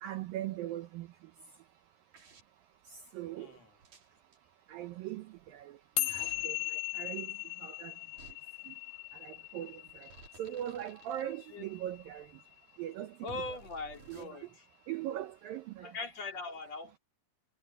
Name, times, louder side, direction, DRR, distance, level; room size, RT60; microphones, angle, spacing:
voice 1, 0.0-1.1 3.1-3.5 4.7-5.2 5.5-5.7 6.1-7.3 7.6-7.9 8.7-8.8 9.2-9.8 10.4-12.3 12.8-13.6 14.1-14.3 14.9-15.9, right 12 dB, 75° right, 2.1 m, -40 dB
sound 1, 2.1-2.4 3.8-4.4 6.0-6.5 8.2-8.3 9.9-11.2 13.3-14.2, right 4 dB, 45° right, 5.1 m, -53 dB
voice 2, 3.3-3.7 11.5-11.7 13.2-14.5 15.8-17.0, left 3 dB, 40° left, 3.7 m, -41 dB
sound 2, 6.0-12.5, left 20 dB, 80° left, 2.3 m, -39 dB
omnidirectional pair, 5.1 m